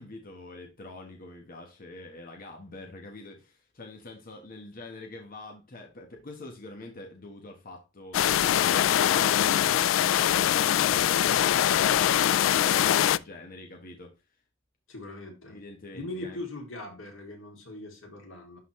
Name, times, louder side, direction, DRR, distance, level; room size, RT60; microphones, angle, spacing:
voice 1, 0.0-11.1 11.5-14.2 15.5-16.4, left 2 dB, 45° left, 1.2 m, -45 dB
sound 1, 8.1-13.2, left 11 dB, 70° left, 0.3 m, -23 dB
voice 2, 14.9-15.6 15.9-18.6, left 2 dB, 90° left, 2.7 m, -40 dB
11.5 x 4.1 x 3.1 m
head